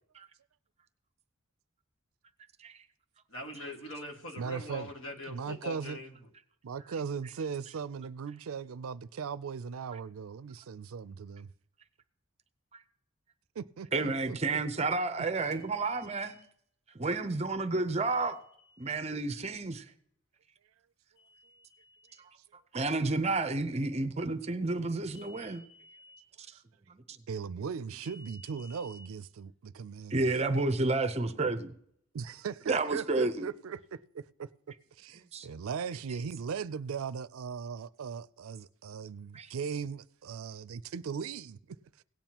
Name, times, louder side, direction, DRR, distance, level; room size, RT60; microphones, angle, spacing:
voice 1, 3.3-6.1, left 1 dB, 75° left, 1.9 m, -42 dB
voice 2, 4.4-4.9 5.3-6.0 6.6-11.5 13.6-14.9 27.3-30.3 32.1-34.5 35.0-42.0, right 6 dB, 80° right, 0.4 m, -38 dB
voice 3, 13.9-16.4 16.9-18.4 18.8-19.8 22.7-25.6 26.4-26.5 26.9-27.0 30.1-31.7 32.7-33.5 35.3-35.5 39.3-39.5, right 3 dB, 30° right, 0.6 m, -30 dB
sound 1, 15.3-16.5 18.0-19.1 21.2-22.2 25.1-26.2 28.0-29.1, left 1 dB, 50° left, 1.7 m, -57 dB
17.5 x 9.0 x 2.9 m
head